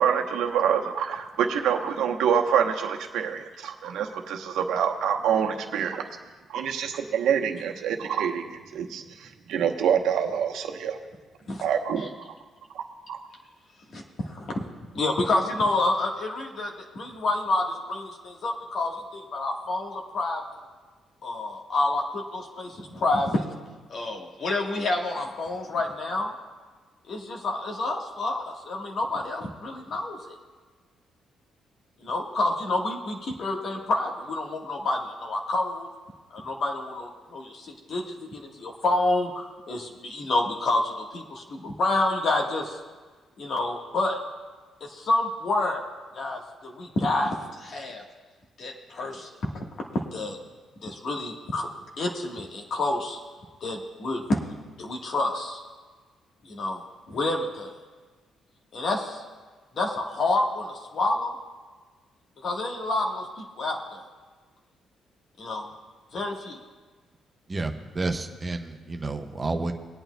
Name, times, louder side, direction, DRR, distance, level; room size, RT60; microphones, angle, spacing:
voice 1, 0.0-6.1 6.5-11.0 11.6-12.3 12.7-12.8 13.1-13.3, right 8 dB, 85° right, 4 dB, 0.9 m, -26 dB
voice 2, 13.9-14.6 14.9-20.4 21.2-23.4 23.9-26.3 27.1-30.4 32.0-35.9 36.3-42.8 43.4-44.2 44.8-45.9 46.1-48.0 48.6-50.4 50.8-51.7 52.0-53.2 53.6-54.4 54.8-55.6 56.4-56.8 57.1-57.7 58.7-59.2 59.7-61.3 62.4-64.0 65.4-65.7 66.1-66.6, left 2 dB, 55° left, 0 dB, 1.4 m, -28 dB
voice 3, 67.5-69.7, right 2 dB, 30° right, 5 dB, 0.8 m, -30 dB
22.5 x 8.8 x 2.3 m, 1.4 s
cardioid pair, 90°, 0 cm